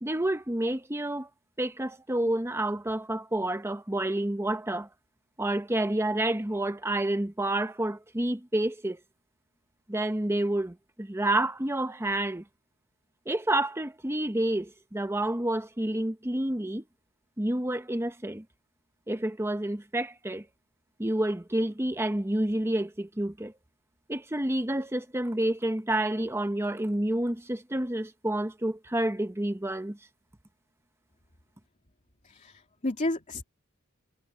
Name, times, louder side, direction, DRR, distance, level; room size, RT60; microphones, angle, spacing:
voice 1, 0.0-1.3 1.6-4.9 5.4-9.0 9.9-12.4 13.3-16.8 17.4-18.4 19.1-20.4 21.0-23.5 24.1-30.0, right 1 dB, 10° right, 1.0 m, -29 dB
voice 2, 32.2-33.4, left 1 dB, 35° left, 2.8 m, -32 dB
head